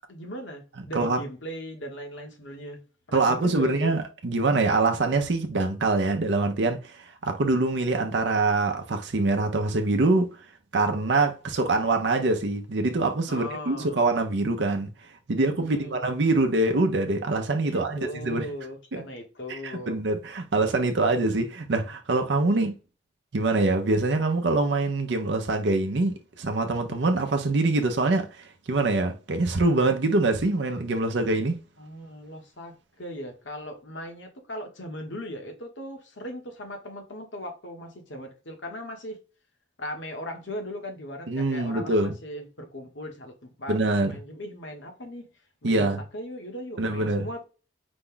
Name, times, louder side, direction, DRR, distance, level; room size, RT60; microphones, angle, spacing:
voice 1, 0.1-2.8 3.1-3.9 13.3-14.0 15.6-16.0 17.7-19.9 31.8-39.2 39.8-43.8 44.0-45.2 45.6-45.9 46.1-47.4, equal, 70° left, 1.3 m, -38 dB
voice 2, 3.1-10.3 10.7-14.9 15.3-18.5 18.9-19.0 19.5-22.7 23.3-31.6 41.3-42.1 43.7-44.2 45.6-46.0 46.8-47.3, right 2 dB, 60° right, 0.6 m, -24 dB
5.1 x 2.3 x 3.8 m
head